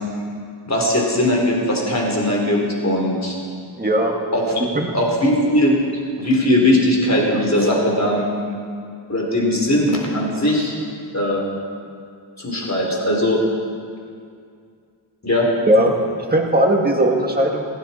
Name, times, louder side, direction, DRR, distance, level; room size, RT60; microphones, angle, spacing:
voice 1, 0.7-3.3 4.3-4.6 4.9-5.8 6.2-8.2 9.1-10.7 11.1-11.4 12.4-13.4 15.2-15.5, left 1 dB, 35° left, -2 dB, 3.5 m, -19 dB
voice 2, 3.8-4.1 4.7-4.9 15.7-15.9 16.2-17.7, right 1 dB, 20° right, 0 dB, 1.8 m, -18 dB
16.5 x 15.0 x 4.3 m, 2.3 s
wide cardioid pair, 70°, 46 cm